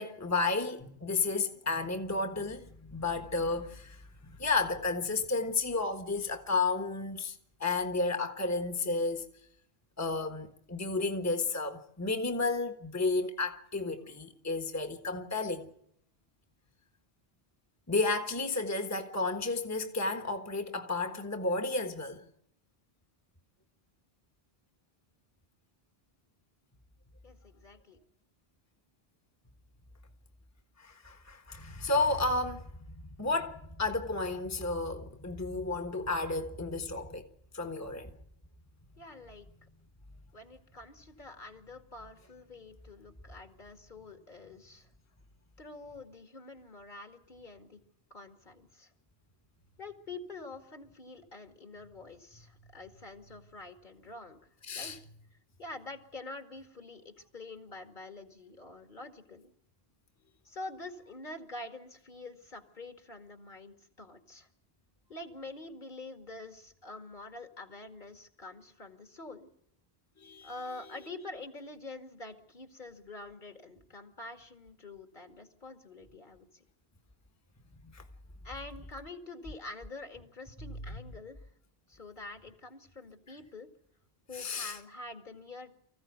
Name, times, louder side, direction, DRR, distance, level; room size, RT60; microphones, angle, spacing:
voice 1, 0.0-7.3 7.6-9.2 10.0-15.7 17.9-22.2 30.8-37.3 37.5-38.1 54.6-55.0 70.2-70.7 71.0-71.2 77.9-78.0 80.6-81.0 83.3-83.4 84.3-84.8, left 3 dB, 15° left, 1.4 m, -32 dB
voice 2, 27.2-28.0 39.0-39.7 40.3-44.9 45.6-47.8 48.1-48.9 49.8-54.4 54.8-54.9 55.6-59.5 60.4-64.5 65.1-69.5 70.4-76.6 78.4-81.4 81.9-83.7 84.3-85.8, left 2 dB, 50° left, 2.3 m, -46 dB
24.5 x 15.5 x 9.4 m
omnidirectional pair, 1.0 m